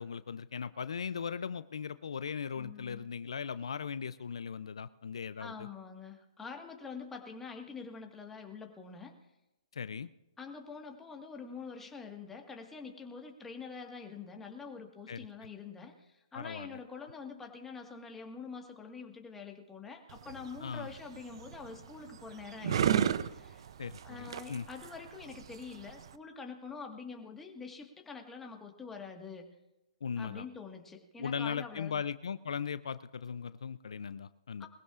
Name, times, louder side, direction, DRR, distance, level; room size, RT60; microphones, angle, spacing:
voice 1, 0.0-5.7 9.7-10.1 15.1-15.3 16.3-16.7 20.6-20.9 23.8-24.7 30.0-30.5 31.2-34.7, left 6 dB, 75° left, 15 dB, 0.5 m, -38 dB
voice 2, 2.6-3.1 5.4-9.1 10.4-23.7 24.0-29.5 30.2-32.0 34.6-34.7, left 5 dB, 10° left, 2 dB, 1.6 m, -46 dB
sound 1, 20.1-26.2, right 9 dB, 60° right, 0.6 m, -35 dB
21.5 x 15.5 x 2.5 m, 0.98 s
hypercardioid pair, 140°, 3 cm